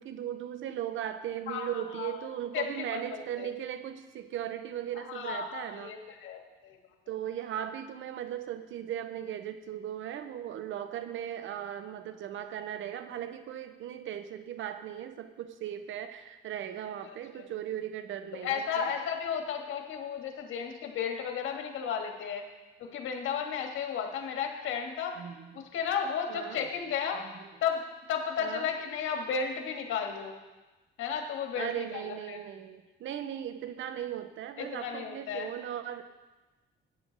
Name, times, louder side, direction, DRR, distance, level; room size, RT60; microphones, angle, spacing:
voice 1, 0.0-6.0 7.1-18.9 25.2-25.6 26.3-26.7 27.2-27.5 28.4-28.7 31.6-36.0, right 10 dB, 75° right, 10 dB, 0.9 m, -38 dB
voice 2, 1.5-2.1 2.5-3.5 5.1-6.8 17.0-17.2 18.4-22.5 22.8-25.2 25.7-27.2 27.6-27.8 28.1-30.3 31.0-32.4 34.6-35.5, left 7 dB, 85° left, 3 dB, 1.7 m, -33 dB
14.0 x 9.6 x 4.0 m, 1.1 s
cardioid pair, 90°, 20 cm